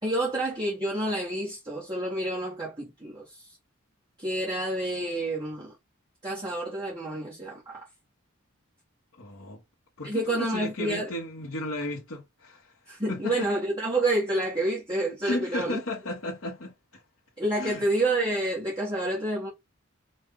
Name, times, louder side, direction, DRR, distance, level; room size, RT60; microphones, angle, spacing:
voice 1, 0.0-3.5 4.2-5.7 6.2-7.8 10.0-11.1 12.9-15.8 17.4-19.5, right 1 dB, 20° right, 1.5 m, -29 dB
voice 2, 9.2-9.6 10.0-12.7 13.1-13.5 15.2-17.0 17.6-17.9, left 2 dB, 70° left, 1.4 m, -34 dB
5.3 x 2.6 x 3.7 m
head